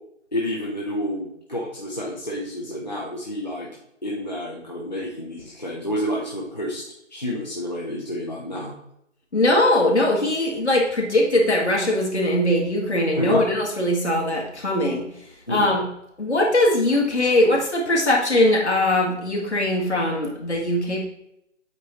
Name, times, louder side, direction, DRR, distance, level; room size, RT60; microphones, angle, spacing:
voice 1, 0.3-3.7 4.0-6.8 7.1-8.7 13.2-13.5 15.5-15.7, equal, 35° left, -4 dB, 0.8 m, -29 dB
voice 2, 9.3-15.1 15.5-15.8 16.2-21.0, left 1 dB, 60° left, -2 dB, 1.8 m, -21 dB
8.1 x 4.0 x 3.0 m, 0.76 s
figure-of-eight pair, 180°, 37 cm